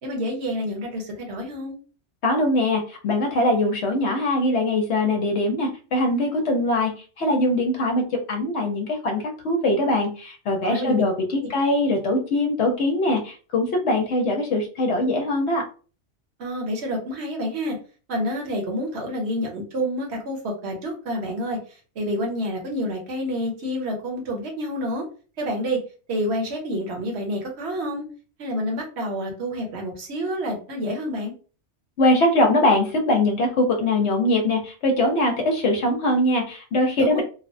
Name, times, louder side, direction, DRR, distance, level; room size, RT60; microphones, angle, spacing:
voice 1, 0.0-1.8 10.6-11.0 11.4-11.5 16.4-17.8 18.1-25.0 25.4-25.8 26.1-28.0 28.4-31.3 37.0-37.2, equal, 65° right, 1 dB, 1.1 m, -28 dB
voice 2, 2.2-6.9 7.2-15.6 32.0-37.2, left 1 dB, 70° left, 3 dB, 1.0 m, -22 dB
3.1 x 2.1 x 2.5 m, 0.37 s
omnidirectional pair, 1.2 m